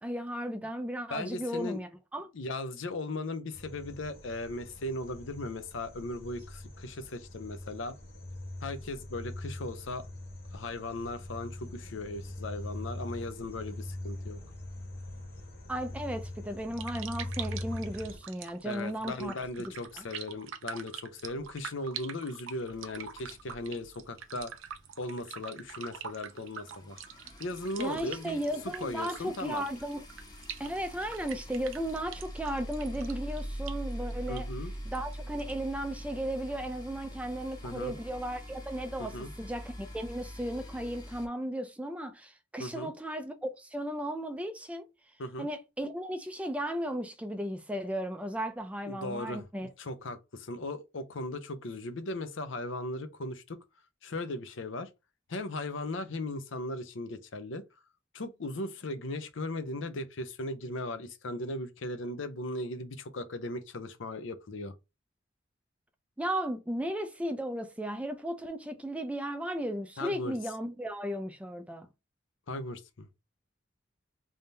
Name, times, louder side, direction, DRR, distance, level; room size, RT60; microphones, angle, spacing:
voice 1, 0.0-2.3 15.7-20.0 27.8-30.0 30.6-34.5 34.9-44.8 45.4-49.7 66.2-71.9, right 1 dB, 5° right, 0.4 m, -35 dB
voice 2, 1.1-1.8 2.3-7.9 8.6-10.0 10.5-14.4 18.6-24.5 25.0-27.0 27.4-28.4 28.8-29.6 34.3-34.7 37.6-38.0 39.0-39.3 42.6-42.9 45.2-45.5 48.9-49.4 49.8-53.6 54.0-54.9 55.3-57.6 58.1-64.7 70.0-70.3 72.5-73.1, left 2 dB, 70° left, 0.7 m, -37 dB
sound 1, 3.5-18.2, left 1 dB, 50° left, 1.7 m, -42 dB
sound 2, 16.5-35.7, right 8 dB, 85° right, 0.5 m, -46 dB
sound 3, 22.6-24.4 24.7-24.9 25.2-25.3 25.5-41.3, equal, 20° left, 0.9 m, -43 dB
3.5 x 2.7 x 3.3 m
head